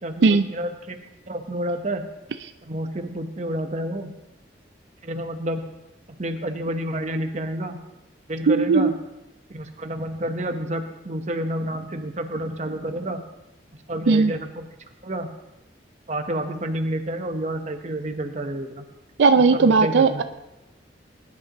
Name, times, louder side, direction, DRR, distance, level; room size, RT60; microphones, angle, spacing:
voice 1, 0.0-1.0 1.3-2.1 2.6-4.2 5.0-5.7 6.1-7.8 8.3-9.0 9.5-13.2 13.9-14.7 15.0-15.3 16.1-18.8 19.5-20.2, right 1 dB, 40° right, 6 dB, 1.0 m, -29 dB
voice 2, 8.5-8.9 14.1-14.3 19.2-20.2, right 4 dB, 85° right, 9 dB, 0.4 m, -17 dB
20.0 x 10.5 x 3.0 m, 0.95 s
head